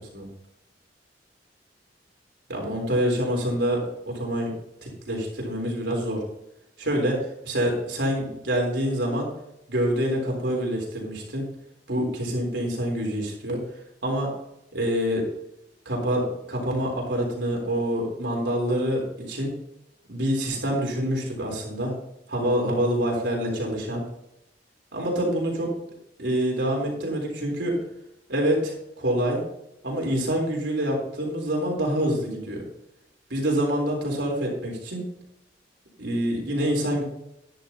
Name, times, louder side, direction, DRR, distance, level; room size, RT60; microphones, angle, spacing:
voice 1, 2.5-4.5 4.8-6.2 6.8-9.3 9.7-11.5 11.9-13.6 14.0-14.3 14.7-15.2 15.9-19.5 20.1-21.9 22.3-24.0 24.9-25.7 26.2-27.8 28.3-29.5 29.8-32.6 33.3-35.0 36.0-37.0, equal, 75° right, -1 dB, 3.7 m, -26 dB
12.0 x 10.5 x 2.9 m, 0.82 s
head